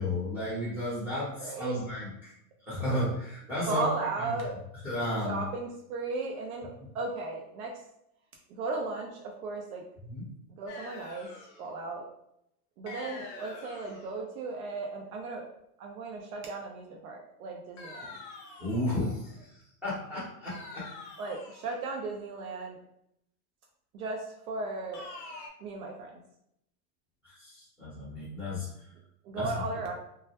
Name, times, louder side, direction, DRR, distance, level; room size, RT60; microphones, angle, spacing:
voice 1, 0.0-2.3 2.6-3.8 4.2-4.4 4.8-5.5 10.0-10.3 18.6-20.9 27.2-28.9 29.3-29.9, left 1 dB, 5° right, -11 dB, 0.8 m, -33 dB
voice 2, 1.4-1.8 3.7-4.6 5.3-7.7 8.6-9.8 10.6-11.3 11.6-12.0 12.8-15.5 15.8-18.1 21.2-22.8 23.9-25.0 25.6-26.1 29.3-29.9, right 3 dB, 60° right, 1 dB, 0.6 m, -36 dB
sound 1, 10.7-11.7 12.9-14.2 17.8-19.1 20.5-21.8 24.9-25.5, left 3 dB, 50° left, 0.5 m, -45 dB
2.1 x 2.0 x 2.8 m, 0.76 s
hypercardioid pair, 135°, 48 cm